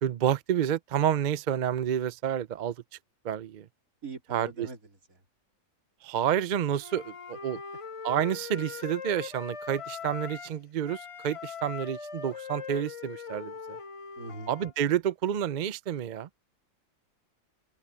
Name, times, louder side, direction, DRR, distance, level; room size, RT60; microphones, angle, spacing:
voice 1, 0.0-2.7 3.2-3.6 4.3-4.7 6.0-7.6 8.0-13.5 14.5-16.3, right 9 dB, 50° right, 0.5 m, -29 dB
voice 2, 4.0-5.2 14.2-14.5, right 3 dB, 85° right, 4.0 m, -42 dB
Wind instrument woodwind instrument, 6.8-10.6 10.9-14.7, left 6 dB, 45° left, 0.4 m, -41 dB
open air
omnidirectional pair, 1.4 m